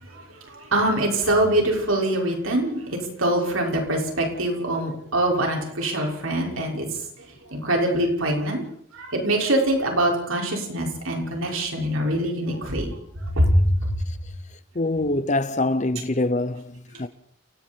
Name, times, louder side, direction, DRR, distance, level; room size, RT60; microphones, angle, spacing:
voice 1, 0.0-8.6 8.9-13.7 16.9-17.0, right 1 dB, 85° right, 6.2 m, -24 dB
voice 2, 14.7-17.1, left 2 dB, 35° left, 0.9 m, -25 dB
29.0 x 19.0 x 4.7 m
head